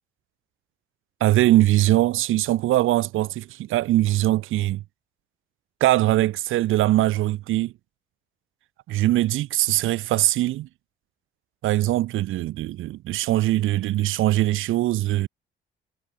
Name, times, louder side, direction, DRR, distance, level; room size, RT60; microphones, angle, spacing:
voice 1, 1.2-4.8 5.8-7.7 8.9-10.7 11.6-15.3, right 15 dB, 90° right, 3.8 m, -21 dB
cardioid pair, 90°, 20 cm